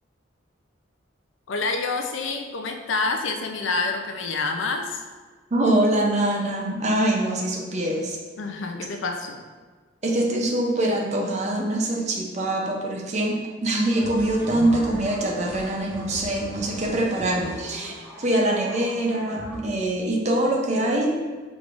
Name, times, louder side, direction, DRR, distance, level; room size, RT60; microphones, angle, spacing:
voice 1, 1.5-5.0 8.4-9.4 14.5-14.7, left 3 dB, 70° left, 4 dB, 0.5 m, -27 dB
voice 2, 5.5-8.2 10.0-21.2, right 1 dB, 35° right, 0 dB, 0.5 m, -24 dB
sound 1, 13.9-19.6, equal, 5° right, 1.0 m, -39 dB
4.9 x 3.4 x 2.5 m, 1.4 s
head